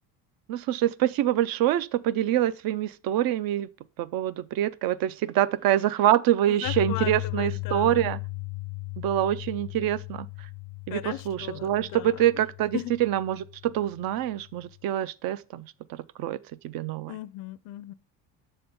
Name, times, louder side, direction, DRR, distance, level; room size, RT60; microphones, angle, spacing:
voice 1, 0.5-3.7 4.0-8.2 9.0-10.3 10.9-15.7 16.2-16.4 16.6-17.2, right 12 dB, 55° right, 0.5 m, -25 dB
voice 2, 6.5-8.1 10.9-12.3 12.7-13.0 17.1-17.9, left 15 dB, 50° left, 0.4 m, -37 dB
Piano, 6.6-14.7, left 28 dB, 90° left, 0.7 m, -37 dB
6.8 x 3.8 x 5.3 m
cardioid pair, 115°, 42 cm